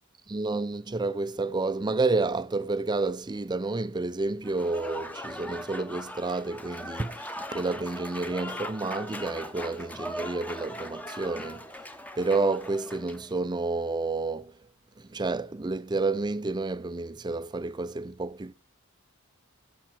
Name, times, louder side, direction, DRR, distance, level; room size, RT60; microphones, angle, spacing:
voice 1, 0.3-14.6 15.0-18.5, right 3 dB, 20° right, 0.4 m, -30 dB
Applause / Crowd, 4.4-13.3, equal, 5° left, 0.8 m, -40 dB
13.5 x 6.8 x 4.2 m
head